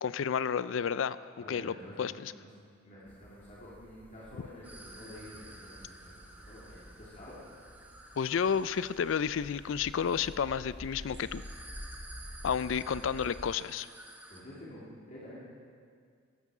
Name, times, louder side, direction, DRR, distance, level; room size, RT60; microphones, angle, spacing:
voice 1, 0.0-1.2 1.5-2.3 8.2-11.4 12.4-13.9, left 7 dB, 65° left, 16 dB, 0.4 m, -31 dB
voice 2, 1.4-2.5 2.8-7.3 14.3-15.4, left 1 dB, 40° left, -8 dB, 2.7 m, -49 dB
sound 1, 3.1-13.5, equal, 10° left, 0.7 m, -50 dB
sound 2, 4.6-14.4, right 1 dB, 10° right, 1.2 m, -53 dB
sound 3, 4.6-9.8, right 1 dB, 40° right, 2.2 m, -59 dB
14.5 x 12.0 x 4.8 m, 2.1 s
head